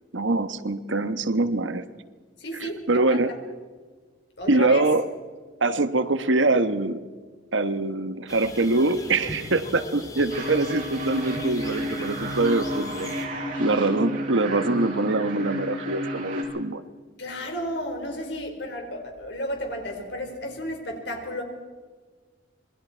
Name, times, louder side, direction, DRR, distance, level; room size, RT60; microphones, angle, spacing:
voice 1, 0.1-1.9 2.5-3.4 4.5-5.1 5.6-7.1 7.5-13.1 13.6-16.8, right 2 dB, 85° right, 11 dB, 1.3 m, -24 dB
voice 2, 2.4-3.2 4.4-4.8 17.2-21.4, equal, 65° left, 3 dB, 4.8 m, -33 dB
sound 1, 8.3-13.3, left 1 dB, 20° left, 2.7 m, -39 dB
sound 2, 10.3-16.4, equal, 45° right, 6.7 m, -31 dB
27.0 x 22.0 x 4.6 m, 1.5 s
head